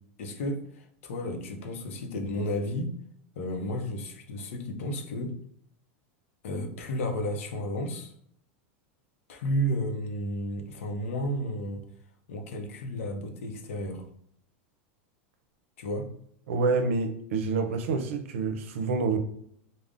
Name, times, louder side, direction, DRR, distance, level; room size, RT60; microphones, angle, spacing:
voice 1, 0.2-2.9 3.4-5.3 6.4-8.1 9.3-11.8 12.3-14.1 15.8-16.1, equal, 80° left, 5 dB, 0.6 m, -32 dB
voice 2, 16.5-19.2, right 4 dB, 75° right, 7 dB, 0.5 m, -27 dB
3.5 x 2.1 x 2.4 m, 0.70 s
supercardioid pair, 140°, 7 cm